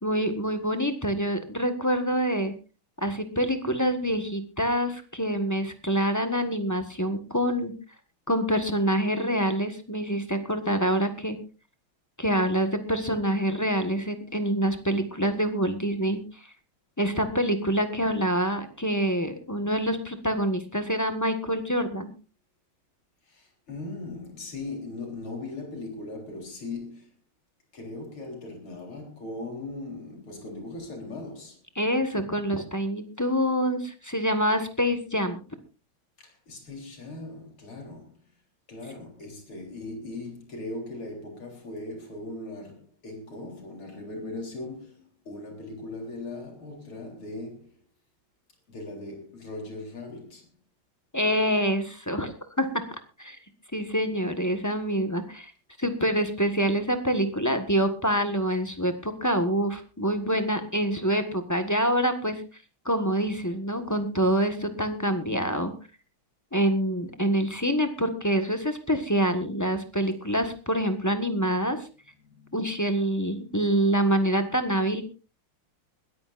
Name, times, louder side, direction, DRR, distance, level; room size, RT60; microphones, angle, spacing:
voice 1, 0.0-2.5 3.0-7.7 8.3-11.4 12.2-16.2 17.0-22.1 31.8-35.4 51.1-52.3 52.6-52.7 53.2-53.4 53.7-55.5 55.8-62.4 62.8-65.7 66.5-71.8 72.5-75.0, equal, 10° left, 1.2 m, -26 dB
voice 2, 23.3-27.1 27.7-31.6 36.2-38.3 38.7-47.8 48.7-50.6 72.2-72.6, left 2 dB, 80° left, 4.7 m, -39 dB
21.5 x 14.0 x 2.6 m
omnidirectional pair, 2.3 m